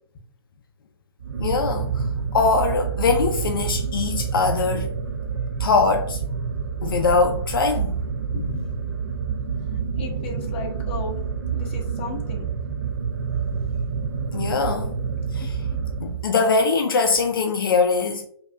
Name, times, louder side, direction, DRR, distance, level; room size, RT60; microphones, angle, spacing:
sound 1, 1.2-16.5, right 6 dB, 50° right, 0.5 m, -28 dB
voice 1, 1.4-2.1 2.3-4.9 5.6-6.2 6.8-8.0 8.3-8.6 14.3-14.9 15.3-15.5 16.0-18.3, left 4 dB, 55° left, 0.4 m, -22 dB
voice 2, 9.7-11.2 11.5-12.5 13.3-13.7 15.1-15.3, left 3 dB, 25° left, 0.8 m, -36 dB
4.6 x 2.7 x 2.4 m
hypercardioid pair, 165°, 13 cm